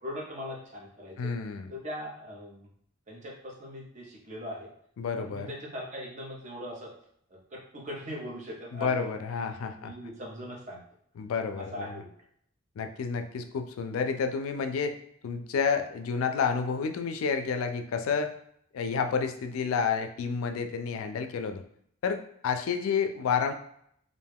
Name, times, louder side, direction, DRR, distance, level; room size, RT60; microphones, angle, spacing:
voice 1, 0.0-1.3 1.7-2.7 3.1-4.7 5.2-6.9 7.3-9.1 9.7-10.8 11.5-12.1, equal, 35° right, -3 dB, 0.7 m, -40 dB
voice 2, 1.2-1.7 5.0-5.5 8.7-9.9 11.2-11.9 12.8-15.0 15.2-18.3 18.7-21.6 22.0-23.5, left 5 dB, 90° left, 7 dB, 0.3 m, -30 dB
2.5 x 2.2 x 3.4 m, 0.68 s
head